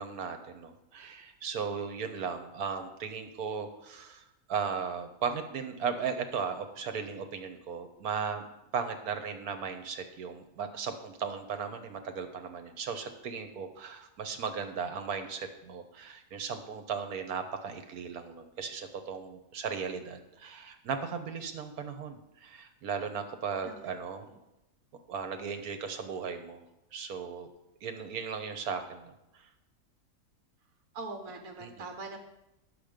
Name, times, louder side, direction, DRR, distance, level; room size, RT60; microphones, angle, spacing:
voice 1, 0.0-8.4 8.7-24.3 25.1-26.6 26.9-27.5 27.8-29.1 31.6-31.7, right 6 dB, 85° right, 7 dB, 1.5 m, -36 dB
voice 2, 30.9-32.2, right 3 dB, 70° right, 3 dB, 1.5 m, -42 dB
10.0 x 6.8 x 5.1 m, 0.91 s
omnidirectional pair, 1.5 m